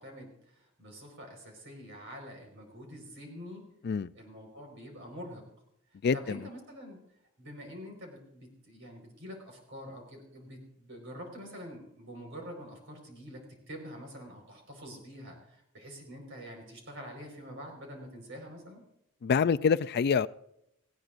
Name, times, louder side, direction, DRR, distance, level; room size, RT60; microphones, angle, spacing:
voice 1, 0.0-3.7 4.1-5.4 6.1-7.0 7.4-18.8, equal, 60° right, 4.6 m, -46 dB
voice 2, 6.0-6.4 19.2-20.3, left 6 dB, 50° left, 0.4 m, -26 dB
18.5 x 16.0 x 2.5 m
head